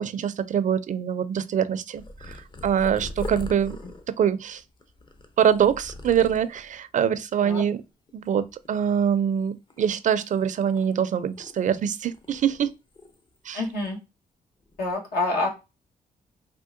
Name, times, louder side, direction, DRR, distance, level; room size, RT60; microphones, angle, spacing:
voice 1, 0.0-3.8 4.1-4.6 5.4-7.8 8.1-12.7 13.5-13.6, right 8 dB, 50° right, 0.4 m, -24 dB
Purr, 2.0-6.8 7.4-7.8 8.1-9.3 9.7-11.8 12.1-13.4 13.6-13.9 14.6-14.9, left 1 dB, 30° left, 0.6 m, -41 dB
voice 2, 13.5-14.0 14.8-15.5, left 2 dB, 75° left, 1.2 m, -27 dB
3.5 x 2.3 x 2.5 m
supercardioid pair, 60°, 16 cm